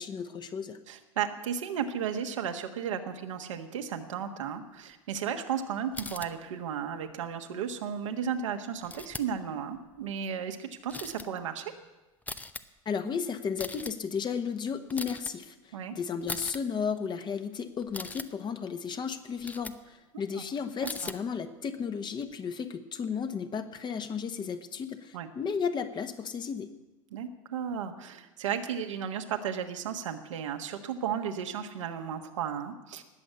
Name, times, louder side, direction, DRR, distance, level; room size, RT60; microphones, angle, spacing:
voice 1, 0.0-0.8 12.8-26.7, left 6 dB, 25° left, 8 dB, 1.3 m, -34 dB
voice 2, 0.9-11.7 15.7-16.0 20.3-20.4 20.8-21.1 25.1-25.3 27.1-33.0, right 8 dB, 65° right, 5 dB, 1.5 m, -34 dB
sound 1, 5.9-6.3 8.8-9.4 9.7-10.1 10.9-11.3 12.2-12.6 13.5-13.9 14.9-15.3 16.2-16.6 17.8-18.3 19.4-19.8 20.8-21.2 22.2-22.3, left 3 dB, 10° left, 0.7 m, -40 dB
19.5 x 7.7 x 8.4 m, 1.1 s
figure-of-eight pair, 75°, 17 cm